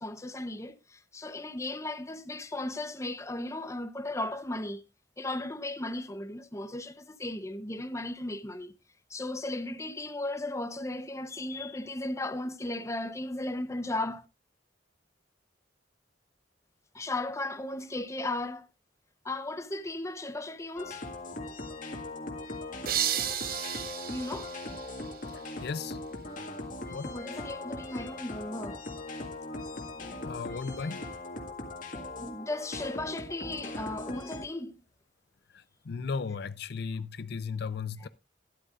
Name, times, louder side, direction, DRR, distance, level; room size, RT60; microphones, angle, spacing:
voice 1, 0.0-4.8 5.2-8.7 9.1-14.2 16.9-18.7 19.2-21.0 24.1-24.5 27.0-28.8 32.2-34.8 38.0-38.1, left 2 dB, 15° left, 0.8 m, -36 dB
sound 1, 20.8-34.4, left 2 dB, 50° left, 1.8 m, -40 dB
sound 2, 22.9-25.6, right 10 dB, 55° right, 0.9 m, -34 dB
voice 2, 25.6-26.0 26.9-27.1 30.2-31.0 35.5-38.1, left 5 dB, 65° left, 0.5 m, -35 dB
12.5 x 11.5 x 2.5 m
head